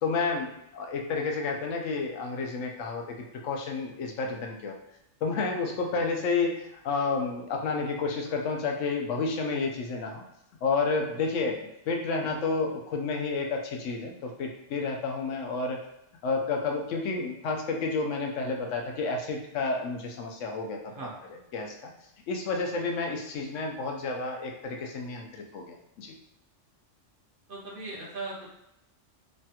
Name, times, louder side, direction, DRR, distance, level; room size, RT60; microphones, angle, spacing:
voice 1, 0.0-4.8 5.2-10.2 10.6-15.8 16.2-21.9 22.3-26.2, left 4 dB, 90° left, 1 dB, 1.0 m, -30 dB
voice 2, 27.5-28.5, right 3 dB, 55° right, -4 dB, 0.8 m, -39 dB
3.2 x 2.2 x 2.8 m, 0.83 s
omnidirectional pair, 1.2 m